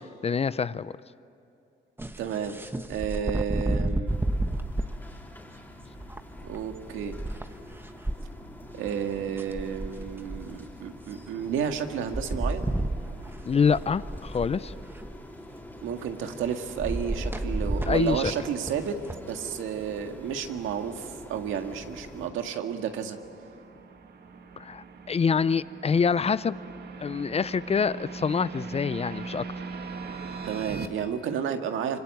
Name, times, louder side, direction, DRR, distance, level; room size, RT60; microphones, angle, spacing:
voice 1, 0.2-0.9 13.5-14.7 17.9-18.3 24.6-26.6 27.0-29.4, left 6 dB, 30° left, 17 dB, 0.6 m, -26 dB
sound 1, 2.0-5.0 5.9-8.2 8.9-9.0 9.1-10.6 11.7-11.8 12.1-15.3 16.8-19.2, right 1 dB, 10° right, 1.3 m, -31 dB
voice 2, 2.2-2.6 2.9-4.2 6.4-7.2 8.8-12.7 15.8-23.2 30.4-32.0, right 8 dB, 85° right, 6 dB, 1.8 m, -31 dB
sound 2, 4.1-22.3, left 1 dB, 10° left, 4.0 m, -46 dB
sound 3, 19.4-30.9, right 4 dB, 55° right, 2.0 m, -41 dB
26.0 x 24.0 x 9.3 m, 2.7 s
cardioid pair, 90°, 20 cm